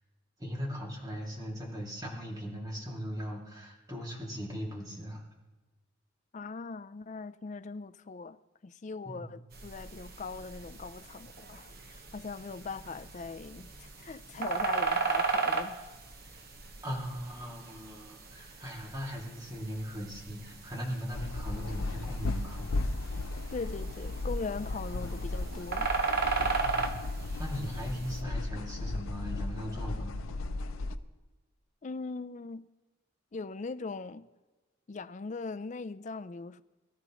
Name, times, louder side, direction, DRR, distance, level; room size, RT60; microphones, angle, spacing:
voice 1, 0.4-5.2 9.1-9.3 16.8-22.6 26.6-26.8 27.4-30.3, equal, 20° right, 2.4 m, -39 dB
voice 2, 6.3-15.8 23.5-25.9 31.8-32.7 33.3-34.3 34.9-36.6, left 4 dB, 35° left, 0.4 m, -40 dB
sound 1, 9.5-28.2, right 4 dB, 50° right, 1.1 m, -37 dB
sound 2, 21.1-31.0, left 2 dB, 85° left, 0.6 m, -35 dB
22.5 x 13.0 x 3.1 m
head